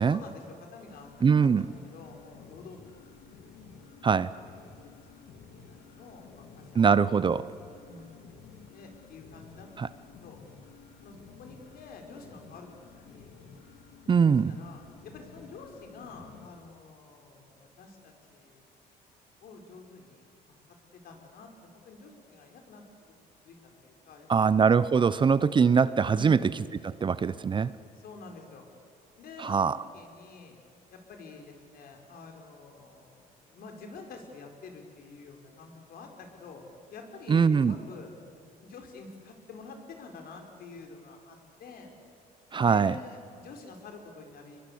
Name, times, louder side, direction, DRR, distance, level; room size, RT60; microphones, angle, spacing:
voice 1, 0.0-3.0 3.4-4.1 4.7-6.9 7.4-7.5 7.8-10.4 11.0-13.3 14.3-18.7 19.4-20.2 21.0-22.8 23.4-24.4 26.1-26.5 27.9-28.7 29.2-30.6 30.9-36.6 36.9-38.1 38.4-41.9 42.6-44.6, left 4 dB, 60° left, 3 dB, 4.5 m, -48 dB
sound 1, 0.9-16.5, left 5 dB, 80° left, 2.5 m, -52 dB
voice 2, 1.2-1.6 4.0-4.3 6.8-7.5 9.8-9.9 14.1-14.5 24.3-26.4 26.8-27.7 29.4-29.8 37.3-37.7 42.5-42.9, right 6 dB, 30° right, 16 dB, 0.6 m, -22 dB
25.5 x 22.0 x 8.5 m, 2.3 s
cardioid pair, 110°, 17 cm